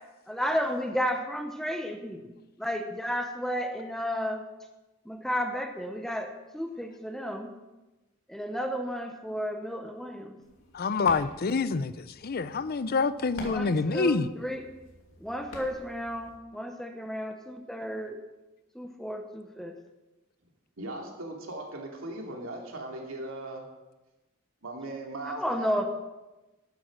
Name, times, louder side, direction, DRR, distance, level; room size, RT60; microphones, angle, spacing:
voice 1, 0.3-2.3 2.6-4.4 5.1-7.5 8.3-10.4 13.4-14.6 15.2-18.2 18.7-19.7 25.4-25.8, equal, ahead, 0.9 m, -32 dB
sound 1, 10.4-16.4, left 1 dB, 85° left, 2.7 m, -48 dB
voice 2, 10.7-14.3, left 4 dB, 50° left, 0.6 m, -27 dB
voice 3, 20.8-23.7 24.6-25.8, right 2 dB, 75° right, 2.7 m, -38 dB
12.5 x 9.3 x 6.1 m
head